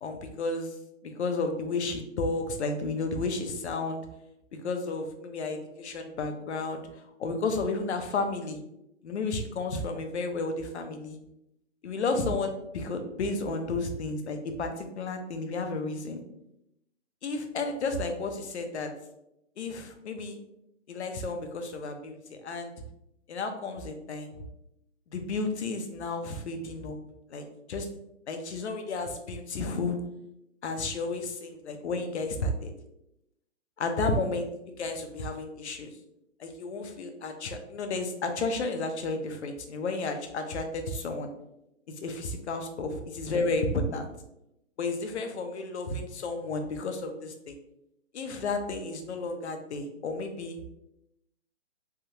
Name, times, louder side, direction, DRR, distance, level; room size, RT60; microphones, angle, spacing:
voice 1, 0.0-0.8 1.0-4.0 4.6-8.6 9.0-11.2 11.8-16.2 17.2-18.9 19.6-20.4 20.9-22.7 23.3-24.4 25.1-27.0 27.3-27.9 28.3-30.0 30.6-32.7 33.8-35.9 36.4-41.3 42.0-44.1 44.8-47.6 48.1-50.6, left 3 dB, 65° left, 6 dB, 0.7 m, -32 dB
3.5 x 2.2 x 2.8 m, 0.83 s
hypercardioid pair, 155°, 37 cm